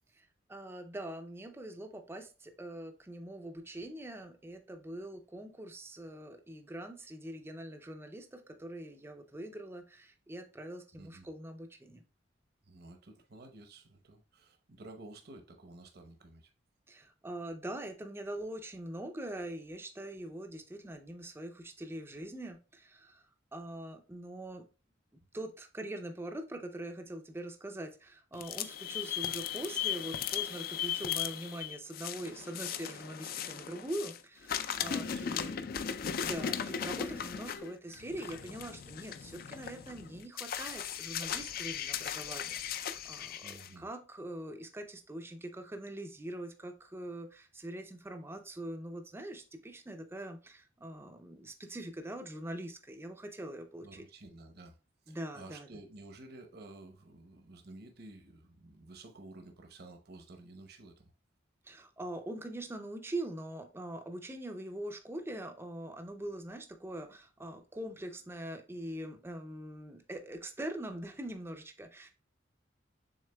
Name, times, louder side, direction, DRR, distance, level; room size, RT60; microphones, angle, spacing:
voice 1, 0.5-12.0 16.9-23.2 23.5-24.7 25.3-35.6 36.2-54.1 55.1-55.7 61.6-72.1, right 1 dB, 15° right, 0.4 m, -43 dB
voice 2, 10.9-11.3 12.6-16.5 34.8-35.7 43.4-43.8 53.8-54.8 55.1-61.1, right 2 dB, 55° right, 0.8 m, -52 dB
sound 1, 28.3-34.2 34.5-43.7, left 8 dB, 50° left, 0.4 m, -37 dB
6.5 x 3.6 x 2.2 m
head